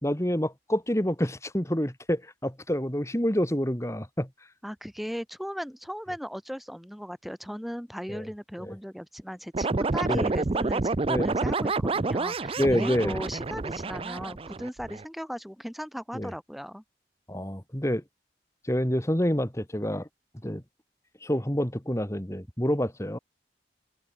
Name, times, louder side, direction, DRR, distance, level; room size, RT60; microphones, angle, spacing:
voice 1, 0.0-4.3 8.1-8.2 8.6-8.7 10.1-10.3 11.1-11.2 12.6-13.2 16.1-16.3 17.3-18.0 18.7-20.1 20.4-20.6 21.2-23.2, equal, 15° left, 2.5 m, -27 dB
voice 2, 4.6-16.8, equal, ahead, 4.3 m, -37 dB
sound 1, 9.5-15.0, right 3 dB, 30° right, 0.5 m, -28 dB
head